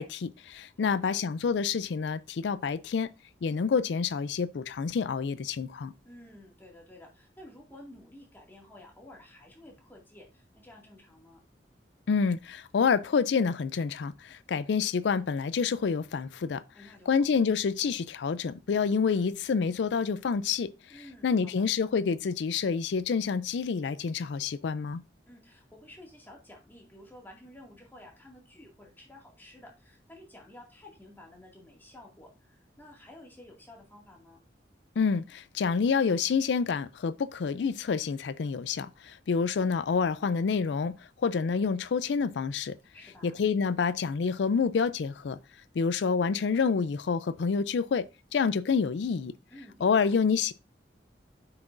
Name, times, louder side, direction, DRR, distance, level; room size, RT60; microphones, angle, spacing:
voice 1, 0.0-3.1 3.4-5.9 12.1-16.6 17.1-20.7 21.2-25.0 35.0-40.9 41.2-42.7 43.2-45.4 45.8-48.0 48.3-49.3 49.8-50.5, left 5 dB, 80° left, 0.4 m, -28 dB
voice 2, 0.8-1.2 6.0-11.4 16.7-17.2 20.9-21.6 25.3-34.4 42.9-43.3 49.5-50.1, left 1 dB, 10° left, 2.1 m, -52 dB
9.6 x 5.9 x 2.6 m
head